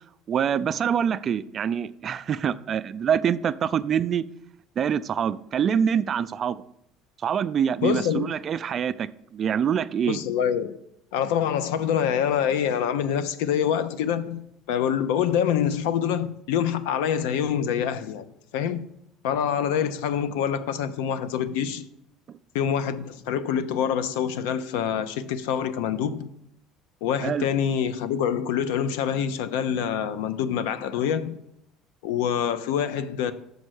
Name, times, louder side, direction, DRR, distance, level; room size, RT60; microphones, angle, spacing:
voice 1, 0.3-4.2 4.8-6.6 7.2-9.1 9.3-10.2 27.2-27.5, right 8 dB, 40° right, 0.3 m, -25 dB
voice 2, 7.8-8.3 10.1-10.8 11.1-14.4 14.7-18.8 19.2-21.9 22.5-26.4 27.0-31.4 32.0-33.3, left 8 dB, 90° left, 0.6 m, -26 dB
6.3 x 5.3 x 6.4 m
cardioid pair, 125°, 0 cm